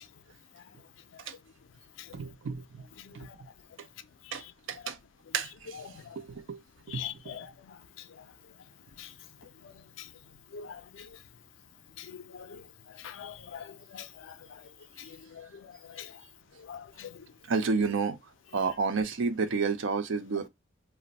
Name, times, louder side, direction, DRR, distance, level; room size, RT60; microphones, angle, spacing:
voice 1, 2.1-2.8 3.1-3.3 4.3-5.0 5.3-5.8 6.2-6.6 6.9-7.4 17.5-18.2 18.5-20.5, right 4 dB, 75° right, 0.5 m, -31 dB
voice 2, 6.9-7.5 9.0-9.1 10.5-11.1 12.0-12.6 13.0-13.7 13.9-14.1 15.4-15.5 16.0-16.1 16.7-17.1, left 9 dB, 75° left, 0.4 m, -42 dB
2.5 x 2.1 x 3.9 m
head